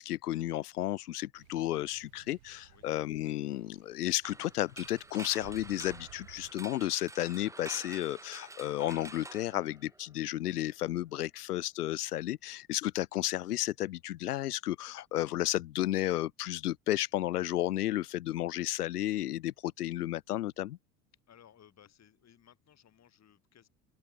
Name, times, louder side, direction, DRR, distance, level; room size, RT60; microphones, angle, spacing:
voice 1, 0.0-20.8, left 14 dB, 75° left, 0.7 m, -33 dB
sound 1, 1.3-6.5, right 19 dB, 65° right, 2.1 m, -57 dB
sound 2, 4.2-10.2, right 3 dB, 5° right, 0.9 m, -48 dB
voice 2, 21.3-23.7, left 10 dB, 35° left, 4.7 m, -60 dB
open air
figure-of-eight pair, 70°, 47 cm